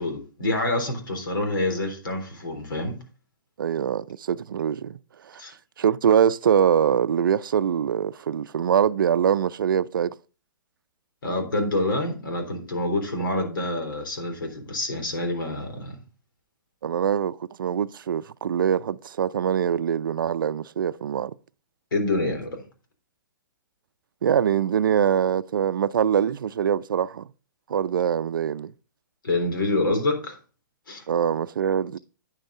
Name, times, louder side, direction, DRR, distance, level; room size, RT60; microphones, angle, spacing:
voice 1, 0.0-3.0 5.4-5.5 11.2-16.0 21.9-22.6 29.2-30.4 30.9-31.0, left 2 dB, 80° left, 3.6 m, -27 dB
voice 2, 3.6-5.0 5.8-10.2 16.8-21.4 24.2-27.3 27.7-28.7 31.1-32.0, right 8 dB, 75° right, 0.5 m, -23 dB
9.0 x 7.7 x 3.6 m
hypercardioid pair, 140°, 11 cm